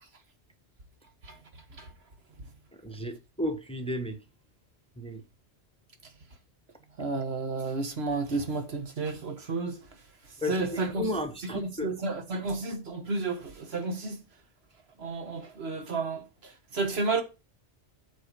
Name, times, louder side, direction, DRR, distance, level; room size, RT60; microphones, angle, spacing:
voice 1, 2.8-4.1 5.0-5.2 10.4-11.9, left 1 dB, 5° left, 1.0 m, -33 dB
voice 2, 7.0-9.8 10.5-11.0 11.5-14.2 15.0-16.2 16.7-17.2, right 3 dB, 65° right, 1.5 m, -31 dB
8.2 x 4.6 x 6.6 m
omnidirectional pair, 1.2 m